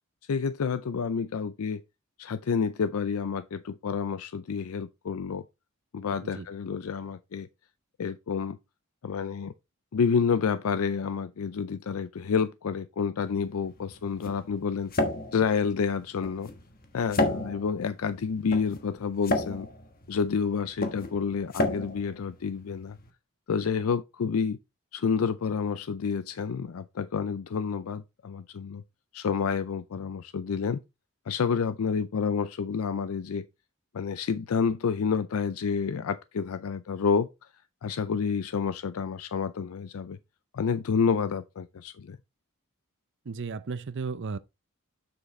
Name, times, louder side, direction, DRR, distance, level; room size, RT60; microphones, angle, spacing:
voice 1, 0.3-1.8 2.2-5.4 5.9-7.5 8.0-8.6 9.0-9.5 9.9-14.9 15.3-16.5 16.9-19.7 20.1-23.0 23.5-24.6 24.9-28.8 29.1-30.8 31.3-33.5 33.9-37.3 37.8-40.2 40.5-42.2, left 6 dB, 75° left, 0.4 m, -29 dB
sound 1, 13.3-23.1, left 2 dB, 45° left, 1.3 m, -33 dB
voice 2, 43.3-44.4, right 4 dB, 60° right, 0.6 m, -34 dB
7.4 x 6.5 x 3.2 m
head